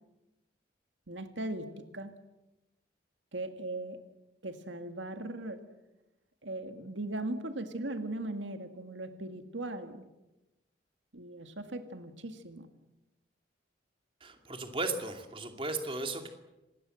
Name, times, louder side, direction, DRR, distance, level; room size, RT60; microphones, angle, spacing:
voice 1, 1.1-2.1 3.3-4.0 4.4-5.6 6.4-10.1 11.1-12.7, right 1 dB, 85° right, 8 dB, 2.0 m, -39 dB
voice 2, 14.2-16.3, right 3 dB, 30° right, 5 dB, 2.5 m, -36 dB
26.5 x 20.0 x 7.8 m, 0.97 s
head